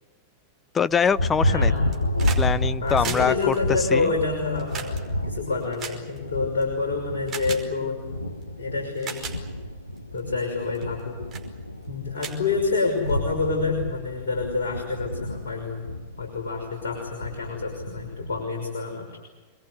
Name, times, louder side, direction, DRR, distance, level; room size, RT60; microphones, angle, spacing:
voice 1, 0.7-1.7 2.4-3.5 3.9-4.1, left 6 dB, 20° left, 15 dB, 0.8 m, -23 dB
Thunder, 0.9-18.4, left 1 dB, 85° left, 1.1 m, -30 dB
voice 2, 1.4-2.0 2.8-8.1 8.6-9.4 10.1-11.2 11.9-15.9 16.2-19.2, left 4 dB, 65° left, 1 dB, 5.9 m, -28 dB
sound 1, 1.8-2.5 2.7-6.6 7.3-7.6 8.4-8.5 8.9-9.4 10.0-10.2 10.7-11.0 11.3-11.5 11.8-11.9 12.2-13.1 14.3-14.4, right 7 dB, 25° right, 5.2 m, -37 dB
27.0 x 21.5 x 8.1 m, 1.3 s
figure-of-eight pair, 90°, 0 cm